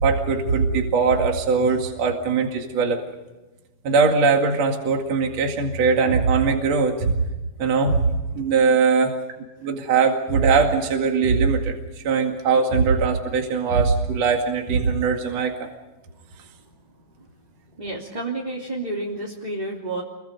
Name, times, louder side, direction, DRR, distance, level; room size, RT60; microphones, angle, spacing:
voice 1, 0.0-3.0 3.8-7.2 7.6-8.1 8.3-9.1 9.6-11.8 12.0-15.7, right 5 dB, 60° right, 3 dB, 3.2 m, -20 dB
voice 2, 8.9-9.2 16.4-16.7 17.1-17.3 17.7-20.0, right 2 dB, 15° right, -4 dB, 3.0 m, -31 dB
29.0 x 23.5 x 5.3 m, 1.1 s
omnidirectional pair, 3.4 m